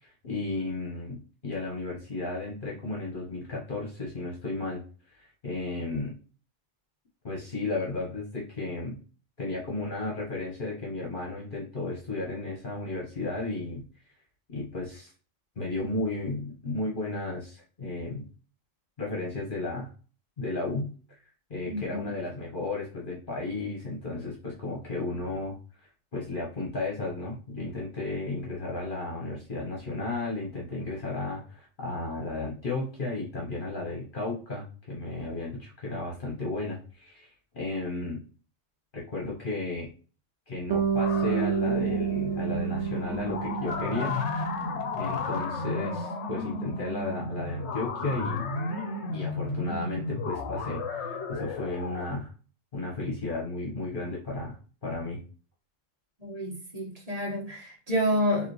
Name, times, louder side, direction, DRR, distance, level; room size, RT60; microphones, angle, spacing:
voice 1, 0.0-4.8 5.1-6.2 7.2-9.0 9.4-13.8 14.5-15.1 15.5-18.2 19.0-19.9 20.4-20.9 21.5-25.6 26.1-37.3 37.5-38.2 38.9-39.9 40.5-44.2 45.0-48.5 49.1-52.3 52.7-54.6 54.8-55.2, left 2 dB, 45° left, -3 dB, 1.2 m, -34 dB
voice 2, 21.6-22.1 56.2-58.5, equal, 30° right, -3 dB, 1.5 m, -29 dB
Bass guitar, 40.7-45.0, right 8 dB, 80° right, 1.0 m, -29 dB
sound 1, 41.0-52.1, left 3 dB, 65° left, 1.0 m, -33 dB
4.9 x 2.9 x 3.1 m, 0.38 s
omnidirectional pair, 1.3 m